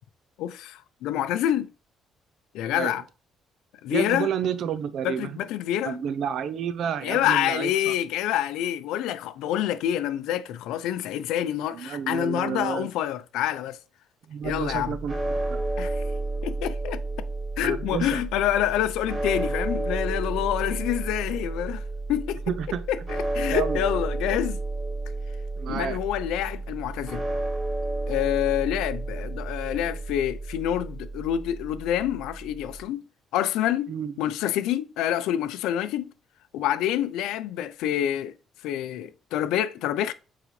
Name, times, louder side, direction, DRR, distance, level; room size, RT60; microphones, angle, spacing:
voice 1, 0.4-1.7 2.5-3.0 3.8-4.3 5.0-6.0 7.0-13.8 14.4-15.0 15.8-16.0 16.4-17.0 17.6-21.8 22.1-22.4 22.9-24.6 25.7-27.2 28.1-33.0 33.3-33.9 34.2-36.1 36.5-38.3 38.6-40.1, left 11 dB, 90° left, 0.5 m, -27 dB
voice 2, 3.9-5.4 5.8-7.9 11.7-12.9 14.3-15.1 15.5-15.7 17.6-18.2 20.7-20.8 22.5-22.8 23.5-23.8 25.6-26.0 33.9-34.1, right 8 dB, 70° right, 0.8 m, -30 dB
sound 1, 14.4-32.8, right 2 dB, 30° right, 2.5 m, -31 dB
8.5 x 3.9 x 3.1 m
cardioid pair, 100°, 0 cm